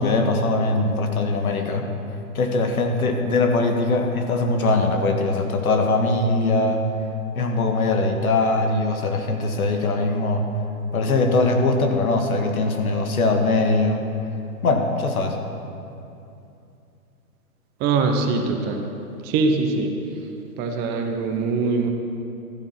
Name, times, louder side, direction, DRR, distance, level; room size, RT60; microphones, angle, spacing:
voice 1, 0.0-1.9 2.4-6.8 7.4-10.4 10.9-14.0 14.6-15.4, left 3 dB, 70° left, 4 dB, 1.9 m, -21 dB
voice 2, 17.8-18.9 19.2-19.9 20.6-21.9, right 4 dB, 20° right, 4 dB, 0.9 m, -22 dB
13.0 x 10.5 x 5.7 m, 2.7 s
hypercardioid pair, 130°, 45 cm